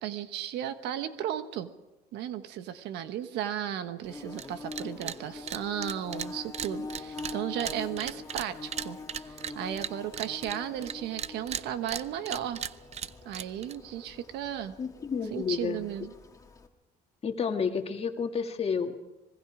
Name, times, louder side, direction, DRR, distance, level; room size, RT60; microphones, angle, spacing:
voice 1, 0.0-1.7 2.1-9.0 9.2-12.6 13.2-14.7 15.3-16.1, right 10 dB, 85° right, 10 dB, 1.3 m, -35 dB
Bird / Buzz, 4.0-16.7, left 3 dB, 20° left, 2.0 m, -44 dB
sound 1, 4.3-4.5 4.7-5.2 5.5-10.9 11.2-13.8, right 8 dB, 40° right, 0.6 m, -36 dB
voice 2, 14.8-15.8 17.2-18.9, left 6 dB, 35° left, 5 dB, 2.0 m, -30 dB
25.5 x 21.0 x 5.0 m, 1.0 s
cardioid pair, 110°, 17 cm